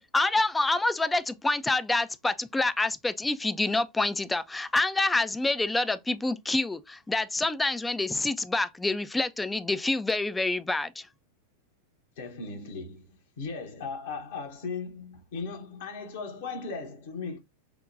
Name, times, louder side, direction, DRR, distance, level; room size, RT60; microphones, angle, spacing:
voice 1, 0.0-11.1, left 2 dB, 10° left, 0.3 m, -27 dB
voice 2, 12.2-17.4, left 4 dB, 55° left, 0.9 m, -37 dB
5.0 x 2.1 x 2.5 m
figure-of-eight pair, 90°, 0 cm